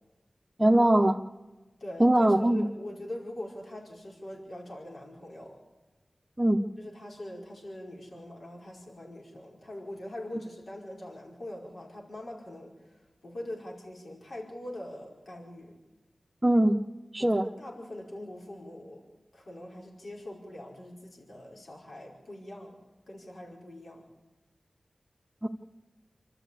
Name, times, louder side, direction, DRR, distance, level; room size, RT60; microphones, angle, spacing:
voice 1, 0.6-1.2 2.0-2.7 6.4-6.6 16.4-16.8 17.1-17.5 25.4-25.5, right 1 dB, 15° right, 1 dB, 1.1 m, -21 dB
voice 2, 1.8-2.3 2.5-5.6 6.8-15.8 17.2-19.0 19.3-22.7 23.1-24.1, left 1 dB, 75° left, -2 dB, 5.1 m, -43 dB
27.0 x 13.0 x 8.4 m, 1.2 s
cardioid pair, 45°, 0 cm